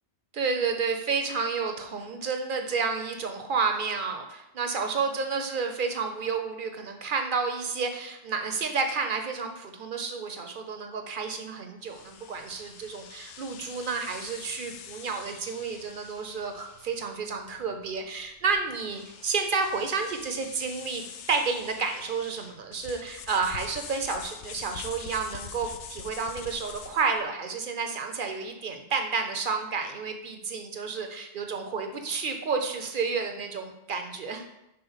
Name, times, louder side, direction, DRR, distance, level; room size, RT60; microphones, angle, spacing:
voice 1, 0.3-34.4, right 5 dB, 55° right, 5 dB, 0.7 m, -30 dB
sound 1, 11.8-27.2, left 7 dB, 85° left, 0.9 m, -45 dB
5.6 x 3.7 x 5.5 m, 0.87 s
omnidirectional pair, 1.2 m